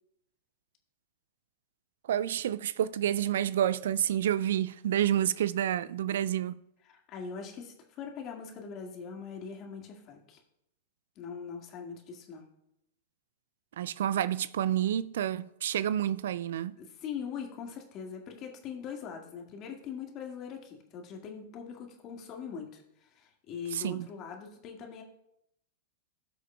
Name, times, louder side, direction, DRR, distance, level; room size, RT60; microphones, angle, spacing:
voice 1, 2.1-6.6 13.8-16.8 23.7-24.1, right 10 dB, 70° right, 0.3 m, -29 dB
voice 2, 6.9-10.4 11.2-12.5 16.8-25.0, left 6 dB, 40° left, 1.9 m, -42 dB
17.0 x 6.1 x 2.3 m
hypercardioid pair, 105°, 0 cm